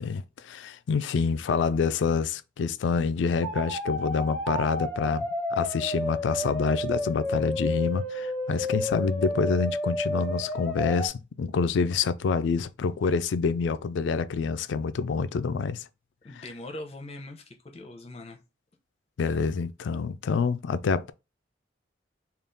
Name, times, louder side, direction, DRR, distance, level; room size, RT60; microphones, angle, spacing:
voice 1, 0.0-15.8 19.2-21.1, left 5 dB, 65° left, 0.3 m, -27 dB
sound 1, 3.4-11.1, left 1 dB, 5° left, 1.0 m, -31 dB
voice 2, 16.2-18.4, left 1 dB, 30° left, 0.7 m, -41 dB
3.5 x 2.4 x 3.8 m
head